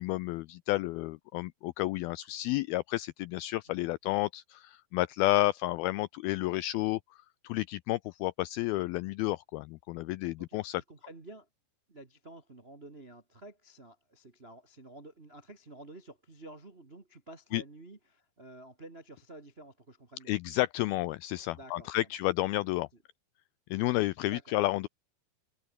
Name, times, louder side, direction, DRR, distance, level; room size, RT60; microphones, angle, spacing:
voice 1, 0.0-7.0 7.4-10.8 17.5-17.6 20.3-22.9 23.7-24.9, left 18 dB, 90° left, 2.1 m, -31 dB
voice 2, 10.4-11.5 11.9-20.4 21.5-22.1 22.6-22.7 24.2-24.5, right 1 dB, 40° right, 0.8 m, -51 dB
omnidirectional pair, 4.9 m